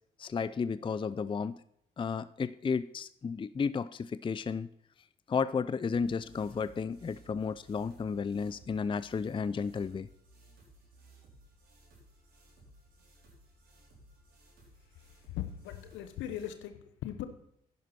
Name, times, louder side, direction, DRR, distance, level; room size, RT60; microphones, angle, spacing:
voice 1, 0.2-1.6 2.0-4.7 5.3-10.1, left 5 dB, 25° left, 16 dB, 0.5 m, -33 dB
sound 1, 5.9-16.5, right 1 dB, 70° right, 4.4 m, -59 dB
voice 2, 15.3-17.3, left 11 dB, 75° left, 10 dB, 1.1 m, -39 dB
11.0 x 10.5 x 4.3 m, 0.74 s
hypercardioid pair, 40°, 20 cm